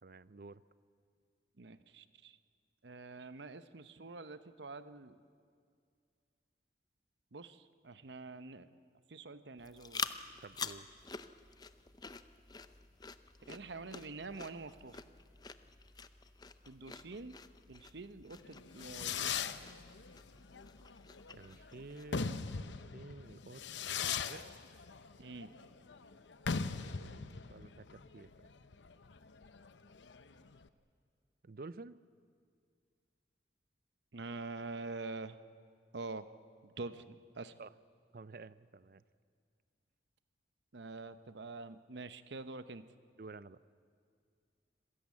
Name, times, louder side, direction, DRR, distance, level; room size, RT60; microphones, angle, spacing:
voice 1, 0.0-0.6 10.4-10.9 21.3-23.6 24.0-24.5 26.7-28.3 31.4-32.0 37.6-37.7 38.1-39.0 43.2-43.6, right 3 dB, 55° right, 17 dB, 0.5 m, -51 dB
voice 2, 1.6-2.4 2.8-5.2 7.3-8.7 9.1-10.1 13.5-15.0 16.7-17.4 17.7-19.3 25.2-25.5 34.1-35.4 35.9-36.3 36.6-37.5 40.7-42.9, right 3 dB, 80° right, 12 dB, 0.9 m, -46 dB
sound 1, 9.6-22.3, left 5 dB, 20° left, 0.6 m, -48 dB
Fireworks, 18.4-30.7, left 6 dB, 85° left, 0.8 m, -40 dB
26.5 x 17.0 x 8.5 m, 2.2 s
head